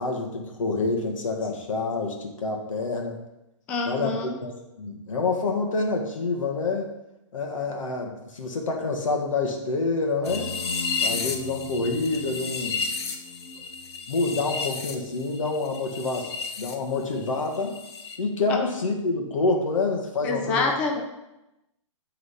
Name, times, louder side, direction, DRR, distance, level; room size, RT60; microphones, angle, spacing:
voice 1, 0.0-3.2 3.8-4.5 4.8-6.9 7.3-10.5 11.0-12.8 14.1-16.3 16.6-17.8 18.2-20.7, left 3 dB, 85° left, 2 dB, 1.7 m, -27 dB
voice 2, 3.7-4.4 18.5-18.6 20.2-21.0, left 3 dB, 10° left, 2 dB, 0.3 m, -26 dB
sound 1, 10.2-16.8 17.0-18.2, left 4 dB, 55° left, 0.9 m, -32 dB
8.2 x 4.0 x 5.7 m, 0.94 s
hypercardioid pair, 170°, 16 cm